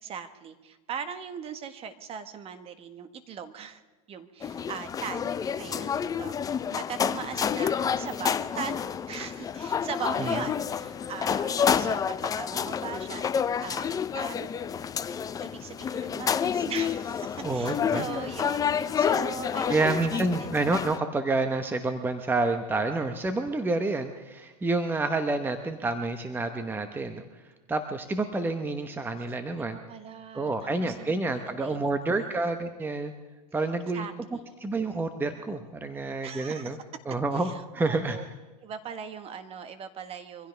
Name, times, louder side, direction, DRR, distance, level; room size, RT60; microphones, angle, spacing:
voice 1, 0.0-3.8 4.1-13.3 13.6-14.5 15.4-20.6 29.6-32.2 33.9-34.5 36.2-36.8 37.3-38.2 38.6-40.5, right 7 dB, 30° right, 9 dB, 1.5 m, -40 dB
sound 1, 4.4-21.0, left 7 dB, 20° left, 0.6 m, -29 dB
voice 2, 17.4-18.0 19.7-29.8 30.3-33.1 33.5-34.0 34.6-36.8 37.1-38.2, right 3 dB, 10° right, 8 dB, 1.0 m, -29 dB
24.5 x 16.0 x 3.4 m, 1.2 s
hypercardioid pair, 120°, 19 cm